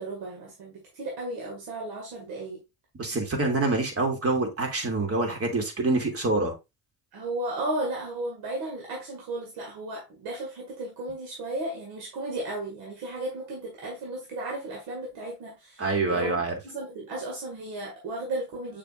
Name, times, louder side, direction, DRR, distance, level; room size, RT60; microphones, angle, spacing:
voice 1, 0.0-2.6 7.1-18.8, right 2 dB, 80° right, 2.2 m, -34 dB
voice 2, 3.0-6.5 15.8-16.5, right 2 dB, 40° right, 2.8 m, -26 dB
6.8 x 5.4 x 2.5 m
supercardioid pair, 60°, 37 cm